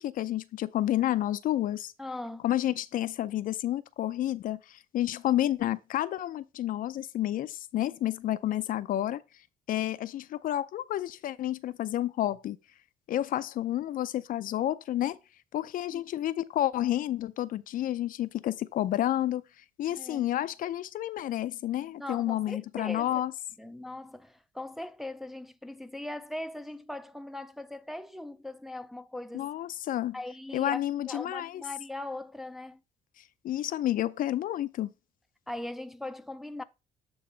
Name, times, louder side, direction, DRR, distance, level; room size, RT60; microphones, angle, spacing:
voice 1, 0.0-1.9 2.4-9.2 9.7-12.6 13.1-15.2 15.5-19.4 19.8-23.3 29.3-30.2 30.5-31.6 33.4-34.9, left 13 dB, 55° left, 0.4 m, -30 dB
voice 2, 2.0-2.4 15.9-16.0 20.0-20.3 22.0-23.1 23.6-29.5 30.1-30.8 31.1-32.8 35.5-36.6, left 1 dB, ahead, 0.4 m, -40 dB
8.7 x 3.0 x 5.0 m
cardioid pair, 110°, 17 cm